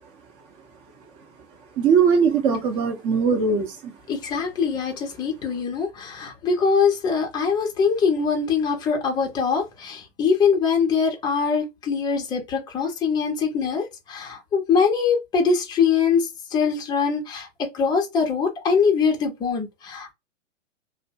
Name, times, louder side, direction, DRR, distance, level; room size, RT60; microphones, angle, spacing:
voice 1, 1.8-4.0, right 6 dB, 30° right, 0.8 m, -20 dB
voice 2, 4.1-20.1, left 5 dB, 10° left, 0.6 m, -23 dB
2.5 x 2.1 x 2.8 m
hypercardioid pair, 120°, 38 cm